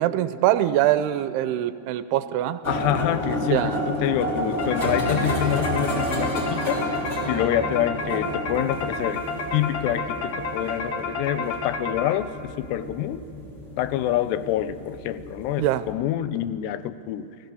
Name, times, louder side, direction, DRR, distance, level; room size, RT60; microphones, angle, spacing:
voice 1, 0.0-2.6 3.4-3.8 15.6-15.8, right 13 dB, 80° right, 13 dB, 2.6 m, -23 dB
sound 1, 2.6-15.9, equal, 20° left, 3.0 m, -31 dB
voice 2, 2.7-6.9 7.3-9.2 9.5-13.2 13.8-17.3, left 12 dB, 90° left, 13 dB, 2.8 m, -26 dB
sound 2, 4.6-12.4, left 3 dB, 55° left, 1.9 m, -31 dB
29.0 x 16.5 x 7.0 m, 2.4 s
omnidirectional pair, 4.7 m